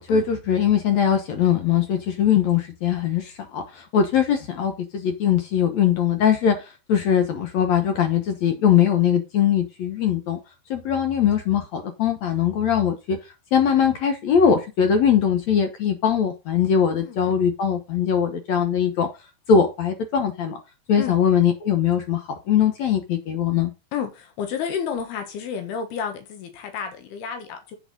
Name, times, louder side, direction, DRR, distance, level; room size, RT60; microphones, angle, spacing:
voice 1, 0.0-10.4 10.7-13.2 13.5-19.1 19.5-20.6 20.9-23.7, left 8 dB, 65° left, 1.8 m, -21 dB
voice 2, 17.0-17.3 20.9-21.2 23.9-27.8, left 7 dB, 80° left, 3.3 m, -31 dB
8.8 x 5.9 x 5.2 m
omnidirectional pair, 4.4 m